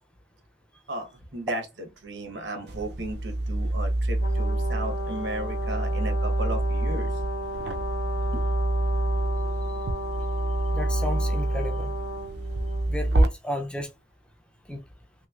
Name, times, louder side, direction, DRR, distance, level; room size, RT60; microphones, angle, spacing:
voice 1, 0.9-1.6 2.0-7.1 8.3-8.4, right 1 dB, 85° right, 1.0 m, -35 dB
sound 1, 2.7-13.3, right 1 dB, 65° right, 0.5 m, -27 dB
Brass instrument, 4.2-12.9, equal, 75° left, 0.5 m, -35 dB
voice 2, 10.7-11.9 12.9-13.9 14.7-14.8, left 1 dB, 5° left, 0.4 m, -33 dB
3.2 x 3.0 x 2.3 m
head